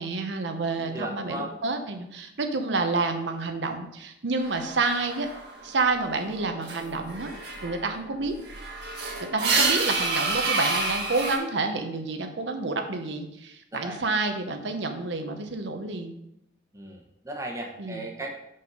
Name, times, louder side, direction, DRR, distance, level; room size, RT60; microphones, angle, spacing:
voice 1, 0.0-5.3 5.6-7.3 7.6-8.4 9.3-16.2 17.8-18.0, right 3 dB, 80° right, 5 dB, 0.8 m, -29 dB
voice 2, 0.8-1.5 9.5-9.8 13.7-14.0 16.7-18.3, right 1 dB, 15° right, 0 dB, 1.0 m, -36 dB
sound 1, 4.4-5.8 6.1-11.4, right 3 dB, 65° right, 1.6 m, -29 dB
5.5 x 5.4 x 5.4 m, 0.81 s
head